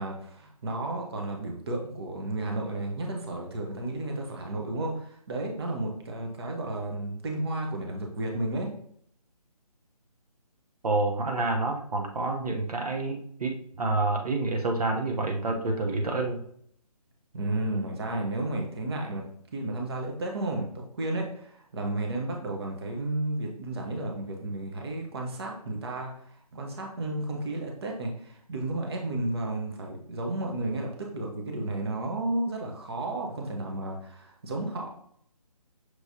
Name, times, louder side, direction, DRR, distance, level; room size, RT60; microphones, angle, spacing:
voice 1, 0.0-8.7 17.3-20.7 20.9-26.3 26.5-34.9, right 2 dB, 40° right, 1 dB, 0.9 m, -32 dB
voice 2, 10.8-16.4, right 2 dB, 70° right, 3 dB, 0.9 m, -28 dB
6.2 x 3.1 x 2.7 m, 0.65 s
hypercardioid pair, 165°, 20 cm